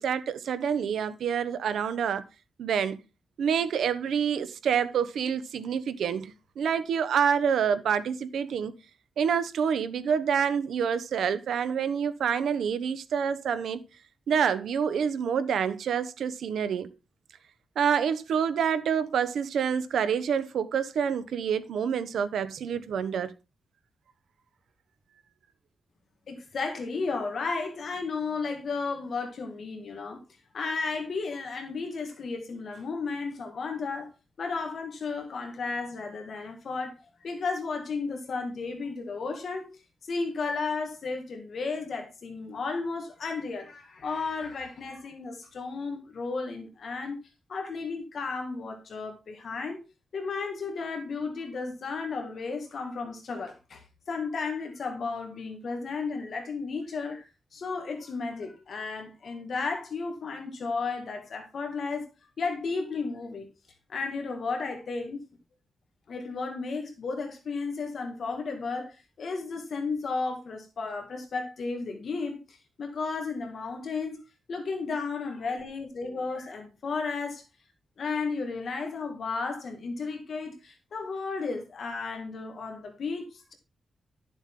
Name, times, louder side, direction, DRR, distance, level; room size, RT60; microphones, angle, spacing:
voice 1, 0.0-2.2 2.6-3.0 3.4-8.7 9.2-13.8 14.3-16.9 17.8-23.3, right 7 dB, 90° right, 0.9 m, -27 dB
voice 2, 26.3-30.2 30.5-34.1 34.4-36.9 37.2-39.7 40.0-47.2 47.5-49.8 50.1-53.8 54.1-62.1 62.4-63.5 63.9-65.2 66.1-74.2 74.5-77.4 78.0-83.5, left 4 dB, 50° left, 1.9 m, -33 dB
12.0 x 7.1 x 3.7 m
wide cardioid pair, 170°, 0 cm